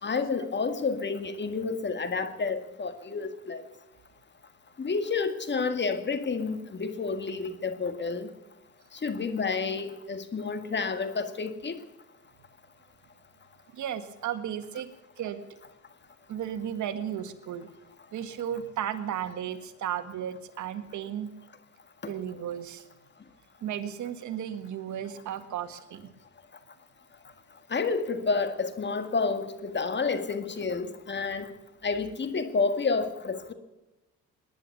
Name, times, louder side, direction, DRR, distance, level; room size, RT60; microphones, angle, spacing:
voice 1, 0.0-3.6 4.8-8.3 9.0-11.8 22.0-22.1 27.7-31.5 31.8-33.5, left 4 dB, 35° left, 9 dB, 1.9 m, -30 dB
voice 2, 13.7-14.9 15.2-15.4 16.3-17.7 18.1-21.3 22.1-22.8 23.6-26.1, right 10 dB, 75° right, 10 dB, 1.8 m, -34 dB
19.5 x 10.5 x 6.9 m, 1.0 s
cardioid pair, 90°, 30 cm